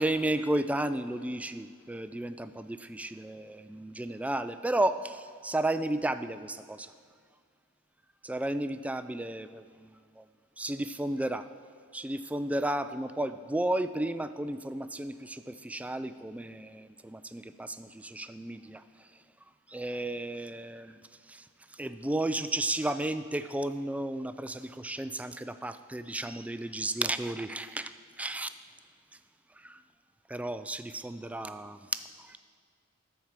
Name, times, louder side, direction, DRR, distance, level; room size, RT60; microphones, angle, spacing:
voice 1, 0.0-6.9 8.2-10.3 10.6-11.5 11.9-19.2 19.7-28.5 29.5-29.8 30.3-32.4, right 1 dB, 5° right, 12 dB, 0.3 m, -33 dB
13.0 x 4.6 x 7.3 m, 2.2 s
head